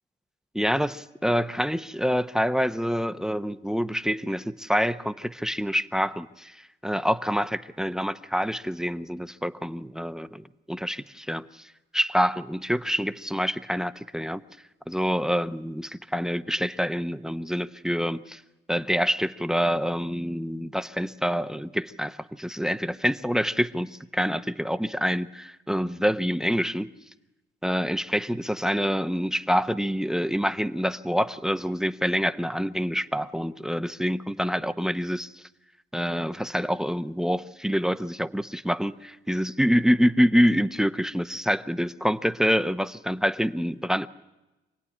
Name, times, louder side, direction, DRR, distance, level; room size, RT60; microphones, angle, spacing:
voice 1, 0.5-14.4 14.9-18.4 18.7-26.9 27.6-35.4 35.9-44.1, equal, 5° right, 13 dB, 0.8 m, -26 dB
26.5 x 17.0 x 10.0 m, 1.0 s
cardioid pair, 90°, 20 cm